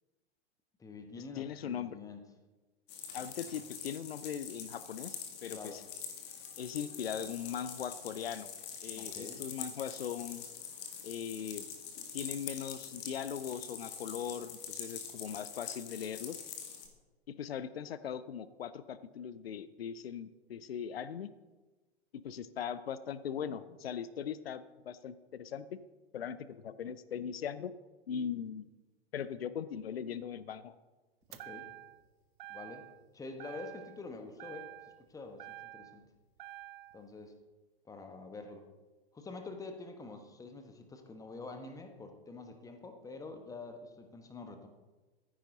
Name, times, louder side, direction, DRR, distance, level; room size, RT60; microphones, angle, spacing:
voice 1, 0.8-2.2 5.5-5.8 9.0-9.4 31.3-31.7 32.5-32.9 33.1-34.7 35.1-36.0 36.9-37.3 37.8-38.6 39.1-44.7, left 3 dB, 10° left, 6 dB, 1.3 m, -46 dB
voice 2, 1.3-2.0 3.1-5.8 6.6-8.5 8.8-10.5 11.0-11.7 12.1-16.4 17.4-21.3 22.2-25.8 26.1-27.8 28.1-28.7 29.1-30.8, left 8 dB, 65° left, 15 dB, 0.6 m, -40 dB
sound 1, 2.9-16.9, left 7 dB, 30° left, 2.1 m, -45 dB
door chime kia, 31.3-32.1 32.4-33.1 33.4-34.1 34.4-36.0 36.4-37.0, right 14 dB, 50° right, 1.0 m, -49 dB
15.0 x 9.9 x 3.9 m, 1.2 s
figure-of-eight pair, 100°, 32 cm